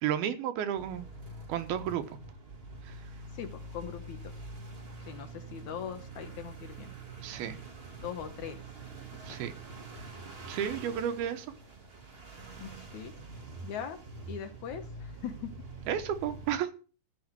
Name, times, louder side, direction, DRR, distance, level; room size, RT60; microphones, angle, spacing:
voice 1, 0.0-1.1 1.5-2.0 2.8-3.1 7.2-7.6 9.3-9.5 10.5-11.5 15.9-16.7, right 9 dB, 85° right, 9 dB, 3.1 m, -32 dB
sound 1, 0.7-16.6, right 3 dB, 45° right, 0.7 m, -45 dB
voice 2, 3.3-4.4 5.1-6.9 8.0-8.6 9.1-9.4 12.6-13.1 13.6-14.0 14.3-15.5, left 8 dB, 65° left, 8 dB, 2.1 m, -41 dB
13.5 x 6.3 x 9.0 m, 0.37 s
omnidirectional pair, 4.3 m